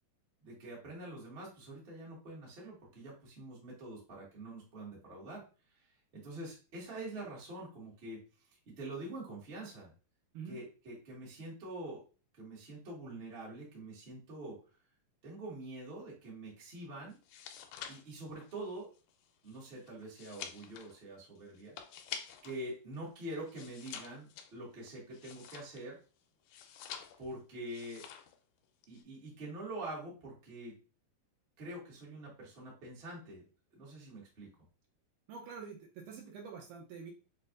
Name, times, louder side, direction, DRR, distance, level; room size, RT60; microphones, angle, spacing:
voice 1, 0.4-5.4 5.7-5.9 6.1-8.2 8.7-9.9 10.4-12.0 12.3-14.6 15.2-17.2 17.9-18.9 19.4-21.7 22.4-26.0 27.2-28.1 28.9-30.8 31.6-33.5 33.7-34.5, right 1 dB, 45° right, -5 dB, 0.7 m, -45 dB
sound 1, 17.1-22.6 22.9-26.0 26.5-27.4 27.7-28.4 28.6-29.0, left 8 dB, 80° left, 2.0 m, -48 dB
voice 2, 35.3-37.1, right 6 dB, 80° right, 0 dB, 2.0 m, -46 dB
6.6 x 2.5 x 2.5 m, 0.34 s
omnidirectional pair, 4.1 m